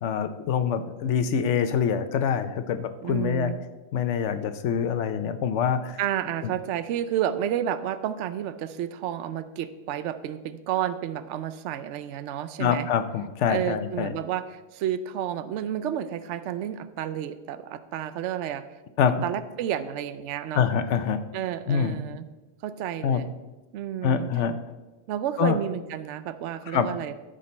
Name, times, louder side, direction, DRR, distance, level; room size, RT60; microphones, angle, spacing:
voice 1, 0.0-3.5 3.9-6.0 12.6-14.1 19.0-19.1 20.5-21.2 21.7-22.0 23.0-23.2 24.0-24.6 25.4-25.6 26.7-26.9, left 7 dB, 70° left, 10 dB, 0.9 m, -25 dB
voice 2, 3.0-3.6 6.0-12.9 13.5-18.6 19.2-20.7 21.3-22.3 22.6-23.3 23.7-24.3 25.1-27.1, right 10 dB, 75° right, 13 dB, 0.9 m, -31 dB
13.5 x 5.2 x 4.3 m, 1.2 s
omnidirectional pair, 1.3 m